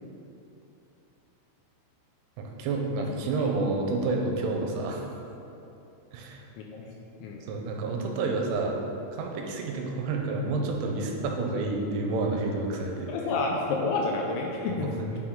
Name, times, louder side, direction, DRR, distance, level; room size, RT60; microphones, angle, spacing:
voice 1, 2.4-5.0 6.1-6.4 7.5-8.8 9.1-13.1 15.0-15.2, right 3 dB, 85° right, 1 dB, 3.1 m, -29 dB
voice 2, 6.6-6.9 7.2-7.4 13.1-14.9, left 3 dB, 85° left, -1 dB, 2.7 m, -29 dB
9.4 x 4.7 x 3.7 m, 2.8 s
omnidirectional pair, 5.7 m